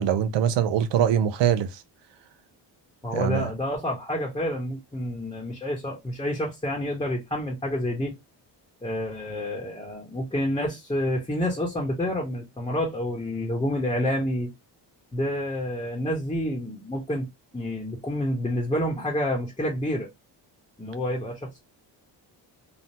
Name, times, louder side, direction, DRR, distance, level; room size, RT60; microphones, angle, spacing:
voice 1, 0.0-1.7 3.1-3.5, right 9 dB, 75° right, 0.6 m, -23 dB
voice 2, 3.0-8.1 8.8-14.5 15.1-17.3 17.5-20.1 20.8-21.6, left 1 dB, 10° left, 1.0 m, -28 dB
3.3 x 2.1 x 2.7 m
cardioid pair, 85°, 44 cm